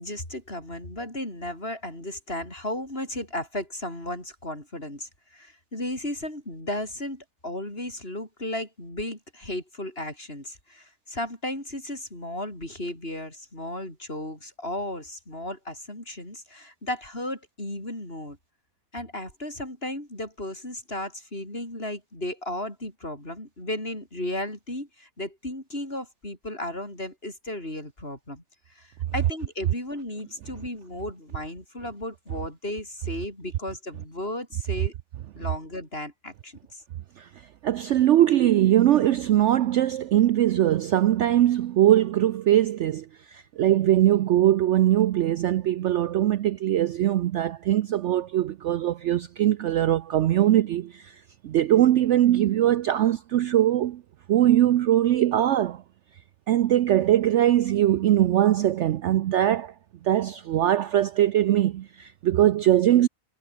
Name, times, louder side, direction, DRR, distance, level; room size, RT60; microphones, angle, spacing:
voice 1, 0.0-18.4 18.9-28.4 28.7-34.9 35.4-36.8, left 1 dB, 35° left, 8.4 m, -35 dB
voice 2, 37.6-54.0 54.3-55.8 56.5-59.7 60.0-63.1, right 12 dB, 80° right, 0.6 m, -21 dB
omnidirectional pair, 1.8 m